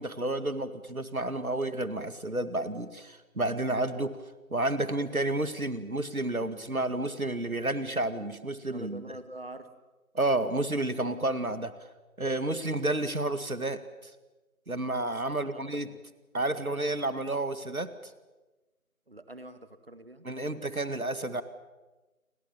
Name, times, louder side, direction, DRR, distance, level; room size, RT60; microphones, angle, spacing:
voice 1, 0.0-4.2 4.5-9.0 10.1-11.7 12.2-13.8 14.7-15.9 16.3-17.9 20.2-21.4, right 2 dB, 75° right, 12 dB, 2.2 m, -30 dB
voice 2, 8.7-9.7 15.3-16.0 16.3-16.5 19.1-20.3, right 1 dB, 40° right, 11 dB, 1.8 m, -46 dB
29.5 x 22.0 x 7.2 m, 1.1 s
figure-of-eight pair, 170°, 43 cm